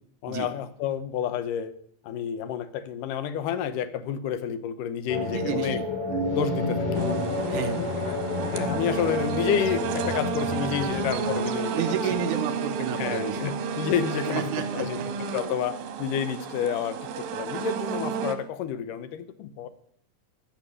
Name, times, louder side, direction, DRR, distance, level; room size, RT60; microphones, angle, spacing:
voice 1, 0.2-1.7 2.0-5.8 6.3-7.0 7.5-7.9 8.5-11.7 12.1-12.2 12.8-14.4 14.7-15.0 15.3-19.7, left 9 dB, 75° left, 12 dB, 2.4 m, -30 dB
sound 1, 5.1-13.1, left 3 dB, 50° left, 3.0 m, -30 dB
voice 2, 5.3-5.9 7.5-7.9 11.7-13.5 14.3-15.1, right 8 dB, 70° right, 6 dB, 2.4 m, -31 dB
sound 2, 6.9-18.4, right 6 dB, 90° right, 2.9 m, -31 dB
13.0 x 6.6 x 9.8 m, 0.67 s
omnidirectional pair, 3.9 m